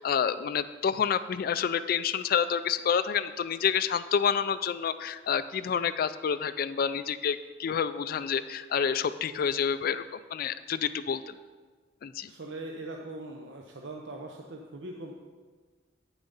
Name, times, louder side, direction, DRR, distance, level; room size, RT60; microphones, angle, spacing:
voice 1, 0.0-10.0 10.3-11.3 12.0-12.3, left 7 dB, 55° left, 11 dB, 0.3 m, -28 dB
voice 2, 12.3-15.1, right 2 dB, 75° right, 1 dB, 0.8 m, -41 dB
8.8 x 7.2 x 5.4 m, 1.4 s
head